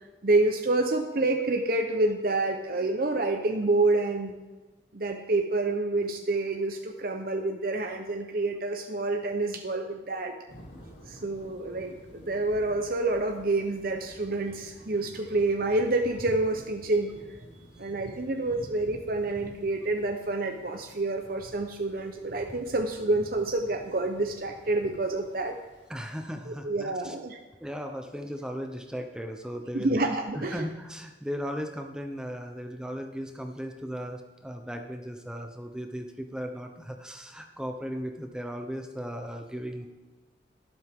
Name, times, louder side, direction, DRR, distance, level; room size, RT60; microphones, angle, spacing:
voice 1, 0.2-4.4 4.9-10.3 11.1-17.1 17.8-25.6 26.5-27.4 29.7-30.7, right 2 dB, 50° right, 3 dB, 0.8 m, -28 dB
sound 1, 10.5-26.2, equal, 90° left, 2.7 m, -49 dB
voice 2, 25.9-27.1 27.6-30.0 30.3-39.9, equal, 5° right, 4 dB, 0.8 m, -37 dB
12.5 x 11.5 x 3.7 m, 1.2 s
head